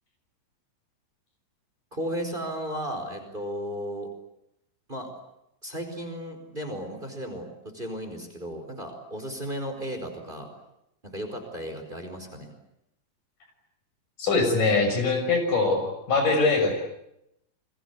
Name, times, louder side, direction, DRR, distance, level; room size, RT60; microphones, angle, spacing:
voice 1, 1.9-4.1 4.9-5.1 5.6-7.5 7.7-10.5 11.0-12.5, equal, 15° right, 6 dB, 4.8 m, -34 dB
voice 2, 14.2-16.7, left 3 dB, 75° left, 5 dB, 8.0 m, -23 dB
29.5 x 23.0 x 8.4 m, 0.81 s
omnidirectional pair, 3.7 m